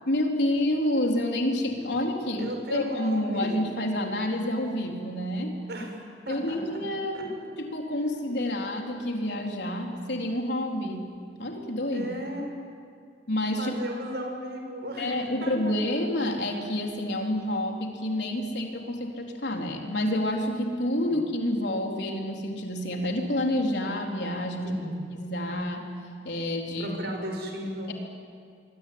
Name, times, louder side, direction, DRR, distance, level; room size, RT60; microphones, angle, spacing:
voice 1, 0.1-5.6 6.3-11.1 11.4-12.1 13.3-13.7 15.0-24.8 25.1-25.9 26.2-26.9, left 1 dB, 75° left, 1 dB, 4.1 m, -28 dB
voice 2, 2.4-3.7 5.7-6.6 7.1-7.2 11.9-12.5 13.6-15.8 21.1-21.2 24.6-25.0 26.8-27.9, equal, 65° right, 3 dB, 6.3 m, -35 dB
27.0 x 22.5 x 9.7 m, 2.3 s
head